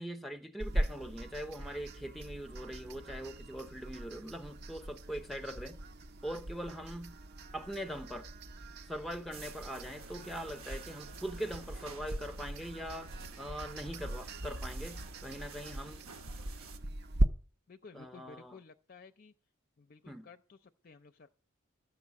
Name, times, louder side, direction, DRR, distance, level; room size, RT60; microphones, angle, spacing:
voice 1, 0.0-5.8 6.2-7.2 7.5-8.3 8.9-16.0 17.9-18.6 20.1-20.3, equal, ahead, 0.7 m, -42 dB
sound 1, 0.6-17.3, right 1 dB, 50° right, 0.6 m, -39 dB
sound 2, 9.3-16.8, right 4 dB, 80° right, 1.1 m, -52 dB
voice 2, 17.7-19.3 19.8-21.3, left 4 dB, 45° left, 0.5 m, -54 dB
12.5 x 7.0 x 8.3 m
head